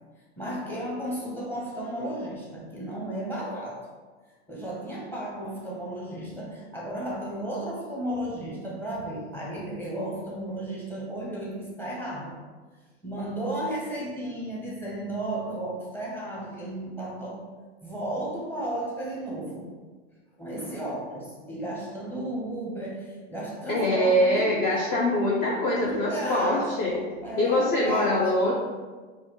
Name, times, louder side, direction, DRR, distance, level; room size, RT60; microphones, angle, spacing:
voice 1, 0.4-3.9 4.5-12.4 13.0-17.5 17.8-19.7 20.4-25.0 25.8-28.3, right 1 dB, 5° left, -5 dB, 0.9 m, -34 dB
voice 2, 23.7-26.9 27.4-28.5, left 1 dB, 25° left, -3 dB, 0.4 m, -23 dB
3.9 x 2.3 x 3.0 m, 1.4 s
hypercardioid pair, 110°, 35 cm